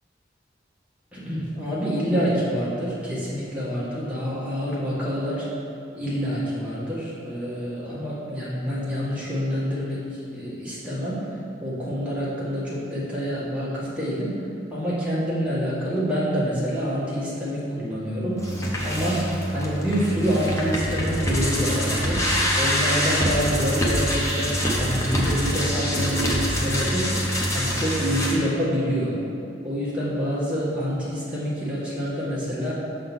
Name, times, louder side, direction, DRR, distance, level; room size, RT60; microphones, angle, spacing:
voice 1, 1.1-5.5 5.9-11.2 11.6-14.3 14.7-18.6 18.8-22.2 22.6-27.1 27.5-29.2 29.6-32.7, equal, 5° right, -9 dB, 1.6 m, -27 dB
sound 1, 18.4-28.3, equal, 15° left, 0.8 m, -25 dB
6.4 x 3.9 x 6.1 m, 2.8 s
head